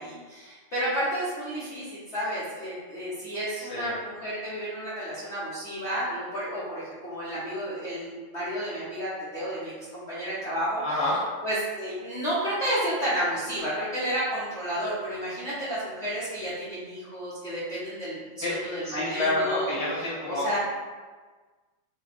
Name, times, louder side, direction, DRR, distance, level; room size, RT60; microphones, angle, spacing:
voice 1, 0.0-11.2 11.4-20.6, equal, 45° left, -10 dB, 1.0 m, -31 dB
voice 2, 3.6-4.0 10.8-11.1 18.4-18.6 18.8-20.4, left 2 dB, 20° left, -8 dB, 1.1 m, -28 dB
4.2 x 2.3 x 4.0 m, 1.4 s
omnidirectional pair, 2.1 m